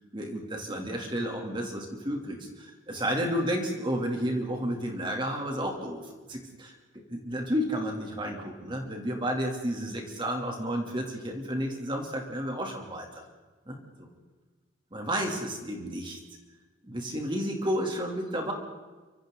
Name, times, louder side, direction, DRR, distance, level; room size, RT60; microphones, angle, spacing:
voice 1, 0.1-6.7 7.1-13.2 13.7-14.1 14.9-16.2 16.9-18.5, equal, 25° right, 1 dB, 3.1 m, -32 dB
30.0 x 26.0 x 4.0 m, 1.3 s
head